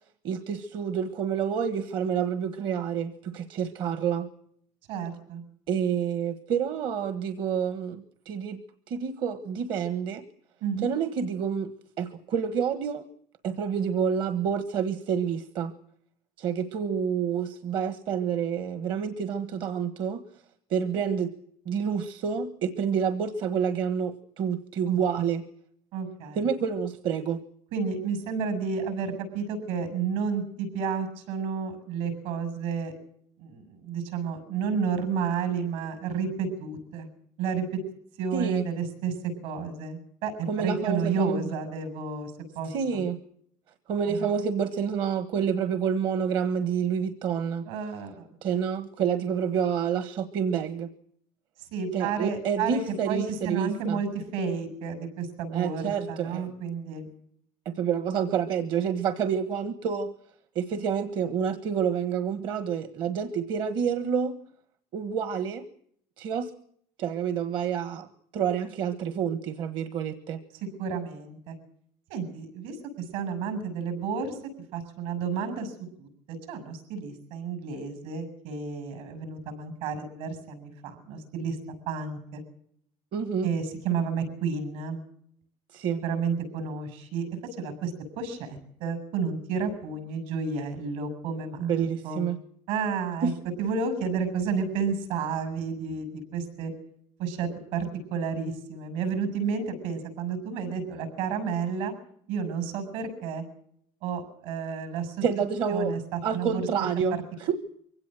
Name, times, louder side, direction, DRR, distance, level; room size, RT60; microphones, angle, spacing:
voice 1, 0.2-4.3 5.7-8.6 8.9-10.2 10.8-11.7 12.0-13.0 13.4-15.7 16.4-20.2 20.7-21.3 21.7-25.4 26.3-27.4 38.3-38.6 40.5-41.4 42.6-43.2 43.9-47.7 48.4-50.9 51.9-54.0 55.5-56.6 57.6-60.1 60.5-64.3 64.9-65.6 66.2-66.5 67.0-68.1 68.3-70.4 83.1-83.5 85.7-86.0 91.6-92.4 93.2-93.3 105.2-107.5, right 7 dB, 40° right, 11 dB, 1.4 m, -28 dB
voice 2, 4.9-5.4 10.6-10.9 24.9-25.3 25.9-26.4 27.7-32.9 33.4-37.1 37.4-37.8 38.2-39.1 39.4-43.0 44.1-44.3 47.7-48.3 51.7-52.8 53.1-57.1 70.8-71.6 72.1-72.8 73.1-74.4 74.7-81.6 81.9-82.4 83.4-85.0 86.0-87.3 87.6-92.3 92.7-93.3 93.6-96.7 97.2-101.9 102.3-103.4 104.0-105.2 105.7-106.7, right 5 dB, 65° right, 12 dB, 7.0 m, -31 dB
24.0 x 17.0 x 7.7 m, 0.66 s
cardioid pair, 180°, 12 cm